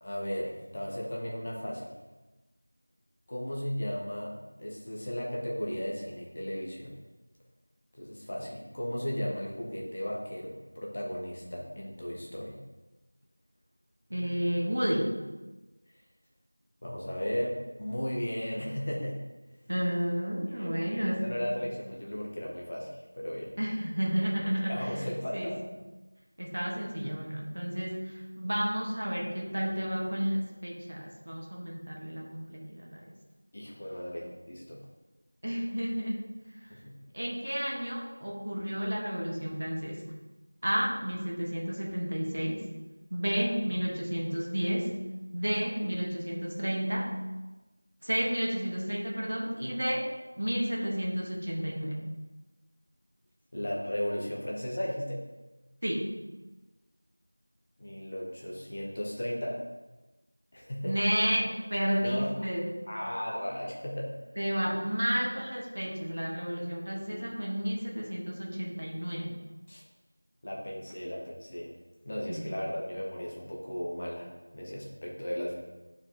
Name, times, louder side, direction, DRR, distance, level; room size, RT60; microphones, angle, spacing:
voice 1, 0.0-2.0 3.3-7.0 8.0-12.6 16.8-19.3 20.5-23.6 24.6-25.6 33.5-34.8 36.7-37.0 53.5-55.3 57.8-59.7 60.5-60.9 62.0-62.5 62.9-64.2 67.1-67.3 69.7-69.8 70.4-71.7 72.0-75.5, equal, 20° left, -3 dB, 0.7 m, -35 dB
voice 2, 14.1-15.2 19.7-21.3 23.6-24.9 25.3-25.5 26.4-33.1 35.4-36.3 37.1-40.0 40.6-42.6 43.1-44.9 45.3-47.1 48.0-50.1 50.4-52.0 55.8-56.2 60.8-62.8 64.4-69.3 72.3-72.5, equal, 45° right, -1 dB, 1.1 m, -31 dB
9.3 x 4.6 x 2.8 m, 1.1 s
figure-of-eight pair, 180°, 0 cm